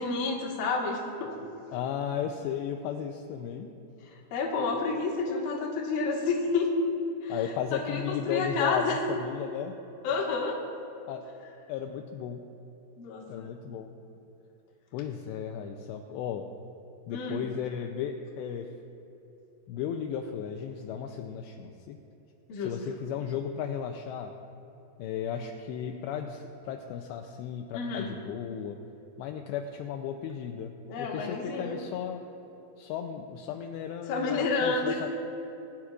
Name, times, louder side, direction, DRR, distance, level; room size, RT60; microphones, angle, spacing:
voice 1, 0.0-1.3 4.3-6.7 7.2-7.4 7.7-9.0 10.0-10.6 13.0-13.5 17.1-17.4 22.5-22.8 27.7-28.1 30.9-31.7 34.1-35.1, left 4 dB, 60° left, -2 dB, 2.8 m, -30 dB
voice 2, 1.7-3.7 7.3-9.8 11.1-11.2 11.7-12.4 13.3-13.9 14.9-16.4 17.1-18.7 19.7-22.0 22.6-24.3 25.0-28.8 29.2-32.2 32.8-35.1, left 8 dB, 80° left, 4 dB, 2.7 m, -35 dB
22.5 x 11.5 x 2.4 m, 2.9 s
omnidirectional pair, 5.2 m